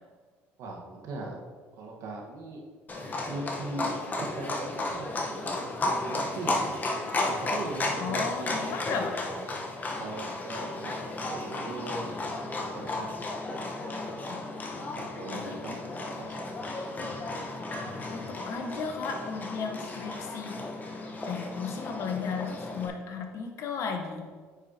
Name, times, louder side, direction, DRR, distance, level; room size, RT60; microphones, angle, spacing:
voice 1, 0.6-1.4 1.8-2.6 3.3-6.8 7.3-8.6 9.6-9.7 10.0-12.1 12.4-13.1 15.0-16.5, right 2 dB, 65° right, 0 dB, 1.4 m, -39 dB
Livestock farm animals working animals, 2.9-22.9, left 2 dB, 30° left, 1.0 m, -34 dB
voice 2, 8.0-9.2 15.3-15.6 18.1-20.6 21.3-24.3, left 5 dB, 60° left, 3 dB, 1.0 m, -35 dB
9.0 x 5.0 x 2.8 m, 1.5 s
supercardioid pair, 80°, 6 cm